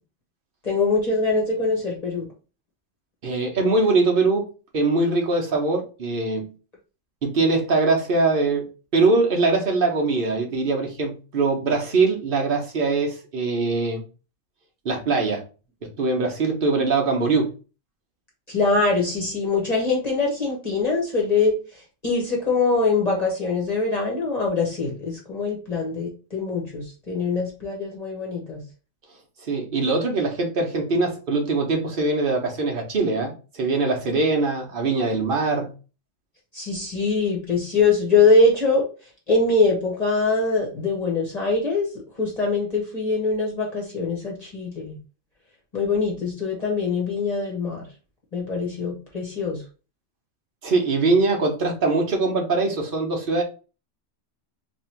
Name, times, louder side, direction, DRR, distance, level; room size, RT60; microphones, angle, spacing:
voice 1, 0.6-2.3 18.5-21.6 22.0-28.6 36.5-38.8 39.3-41.9 42.2-45.0 45.7-47.8 48.3-49.6, left 3 dB, 35° left, 1.0 m, -23 dB
voice 2, 3.2-4.5 4.7-6.5 7.2-8.7 8.9-14.0 14.8-15.4 16.0-17.5 29.4-35.7 50.6-53.4, right 3 dB, 50° right, 1.0 m, -22 dB
3.0 x 2.6 x 4.3 m
omnidirectional pair, 1.3 m